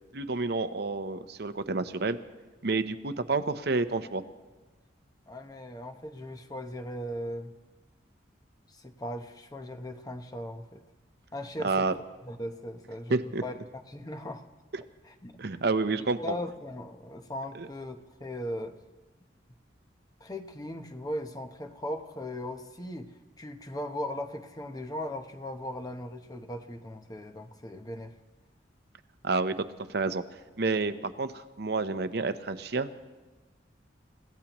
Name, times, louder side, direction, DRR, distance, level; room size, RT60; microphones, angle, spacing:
voice 1, 0.1-2.2 2.6-4.2 11.6-11.9 13.1-13.4 15.4-16.3 17.5-17.7 29.2-29.6 29.9-30.2 30.6-32.9, right 3 dB, 55° right, 10 dB, 0.7 m, -29 dB
voice 2, 5.3-7.5 8.7-10.8 11.3-12.0 12.2-13.2 13.4-13.5 13.9-14.4 15.0-15.4 16.2-18.8 20.2-28.1, left 1 dB, 20° left, 6 dB, 0.8 m, -38 dB
30.0 x 16.0 x 3.0 m, 1.2 s
head